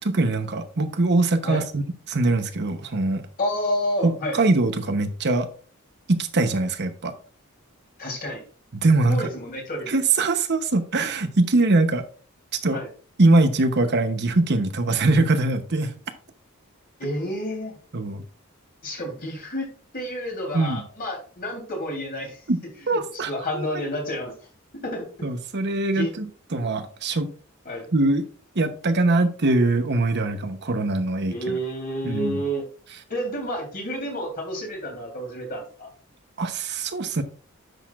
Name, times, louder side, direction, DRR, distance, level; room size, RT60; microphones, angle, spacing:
voice 1, 0.0-3.2 4.0-5.5 6.1-7.1 8.8-9.3 9.9-12.0 12.6-12.8 13.2-15.9 17.9-18.2 20.5-20.8 22.5-22.6 22.9-23.6 25.2-27.3 27.9-28.2 28.5-31.6 32.0-32.4 36.4-37.2, right 2 dB, 55° right, 8 dB, 0.9 m, -22 dB
voice 2, 3.4-4.4 8.0-8.4 9.1-9.9 12.7-12.9 17.0-17.8 18.8-19.7 19.9-22.4 22.9-23.0 23.3-24.3 24.7-25.3 25.9-26.1 27.7-27.9 31.3-32.7 33.1-35.9, equal, 45° left, 1 dB, 3.3 m, -30 dB
10.0 x 6.5 x 2.4 m, 0.40 s
head